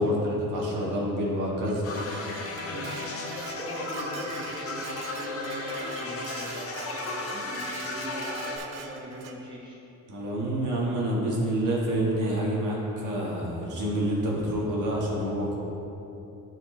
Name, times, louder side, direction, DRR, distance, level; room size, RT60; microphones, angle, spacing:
voice 1, 0.0-1.8 10.1-15.6, equal, 55° right, -4 dB, 1.6 m, -27 dB
Dishes pots and pans, 1.7-9.4, right 6 dB, 70° right, 0.7 m, -44 dB
sound 1, 1.8-8.6, left 2 dB, 40° left, 0.8 m, -35 dB
voice 2, 3.5-9.8, right 1 dB, 10° right, -7 dB, 1.3 m, -40 dB
11.0 x 4.4 x 3.2 m, 3.0 s
cardioid pair, 135°, 38 cm